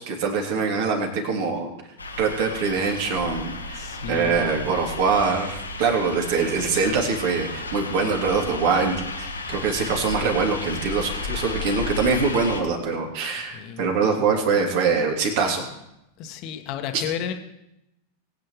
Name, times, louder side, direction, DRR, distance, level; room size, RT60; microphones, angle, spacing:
voice 1, 0.0-1.7 2.2-15.7 16.9-17.0, right 5 dB, 50° right, 1 dB, 3.0 m, -24 dB
sound 1, 2.0-12.6, left 2 dB, 80° left, 1.5 m, -33 dB
voice 2, 3.7-4.7 13.3-13.8 16.2-17.3, left 9 dB, 40° left, 6 dB, 1.4 m, -33 dB
22.0 x 9.4 x 3.2 m, 0.85 s
figure-of-eight pair, 90°, 0 cm